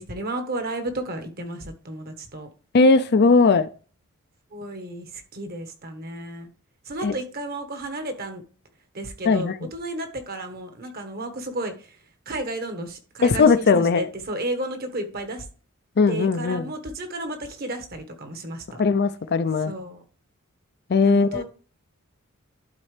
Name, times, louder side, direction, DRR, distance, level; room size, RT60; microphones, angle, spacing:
voice 1, 0.0-2.5 4.5-6.5 6.8-8.4 8.9-11.9 12.3-15.5 16.1-18.8 19.6-20.0 21.0-21.4, right 1 dB, 45° right, 1.3 m, -33 dB
voice 2, 2.7-3.7 7.0-7.1 9.3-9.6 13.2-14.1 16.0-16.7 18.8-19.7 20.9-21.4, left 4 dB, 50° left, 0.4 m, -18 dB
11.5 x 4.2 x 3.3 m
head